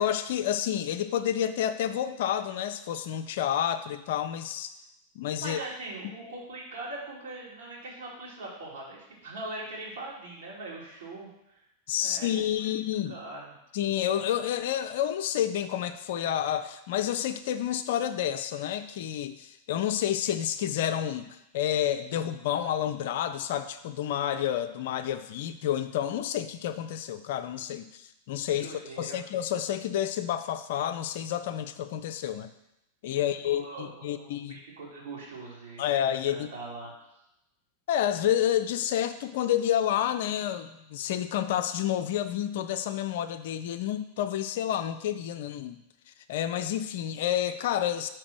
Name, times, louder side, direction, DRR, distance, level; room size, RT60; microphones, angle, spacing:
voice 1, 0.0-4.7 5.2-5.6 11.9-13.1 13.7-32.5 33.0-34.5 35.8-36.5 37.9-45.8 46.1-48.1, left 10 dB, 55° left, 10 dB, 0.4 m, -29 dB
voice 2, 5.4-11.6 12.0-12.7 13.1-13.5 28.5-29.2 33.1-35.8 36.3-36.9, right 2 dB, 60° right, -5 dB, 2.5 m, -41 dB
5.0 x 4.5 x 6.1 m, 0.87 s
figure-of-eight pair, 90°, 0 cm